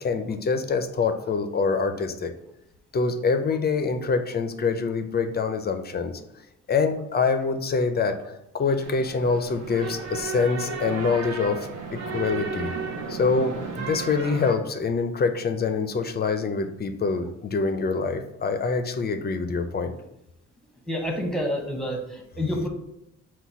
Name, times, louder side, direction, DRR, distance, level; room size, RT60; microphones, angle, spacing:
voice 1, 0.0-2.3 2.9-6.2 6.7-12.7 13.1-19.9, left 4 dB, 30° left, 8 dB, 0.4 m, -25 dB
sound 1, 8.8-14.6, right 4 dB, 55° right, 0.7 m, -33 dB
voice 2, 20.9-22.7, equal, ahead, 1 dB, 0.7 m, -28 dB
4.0 x 2.2 x 4.5 m, 0.84 s
cardioid pair, 110°, 32 cm